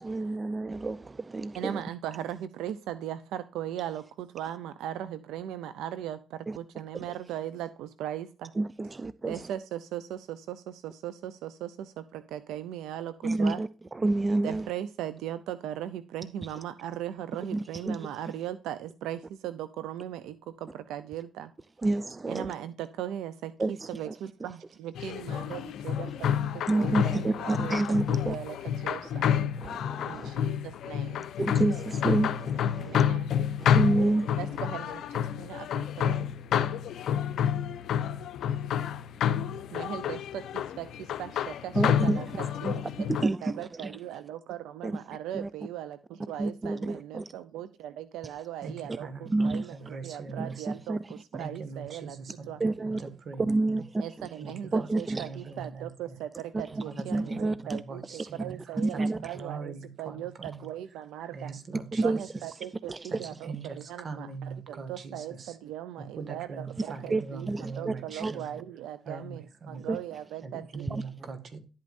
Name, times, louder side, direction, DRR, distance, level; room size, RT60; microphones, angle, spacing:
voice 1, 0.0-1.8 6.5-6.6 8.6-9.5 13.2-14.7 17.5-18.1 21.8-22.5 23.6-24.1 26.7-28.4 29.6-30.3 31.4-33.0 33.6-34.4 41.7-42.2 42.6-42.8 43.1-44.0 44.8-45.0 45.3-45.5 46.4-47.3 49.3-49.7 50.4-51.1 52.6-53.0 53.4-54.3 54.7-55.3 56.5-56.8 57.1-57.8 58.8-59.4 61.9-62.2 62.9-63.3 67.1-67.9 68.2-68.3 69.9-70.0 70.9-71.0, right 2 dB, 25° right, 0.4 m, -29 dB
voice 2, 1.5-8.5 9.3-13.6 14.4-21.5 22.3-27.8 28.1-29.3 30.0-31.3 32.8-33.3 34.4-36.3 39.7-52.2 52.4-52.6 54.0-61.5 62.0-62.9 63.2-67.5 67.7-70.8, right 11 dB, 90° right, 0.5 m, -39 dB
sound 1, 25.0-43.2, left 9 dB, 75° left, 0.7 m, -29 dB
voice 3, 48.6-50.7 51.4-53.8 54.4-54.9 55.2-56.2 56.7-57.4 57.6-60.7 61.3-62.2 63.1-65.6 66.0-68.6 69.1-69.9 70.4-71.6, right 4 dB, 55° right, 1.8 m, -42 dB
11.5 x 8.5 x 2.6 m
cardioid pair, 90°, 0 cm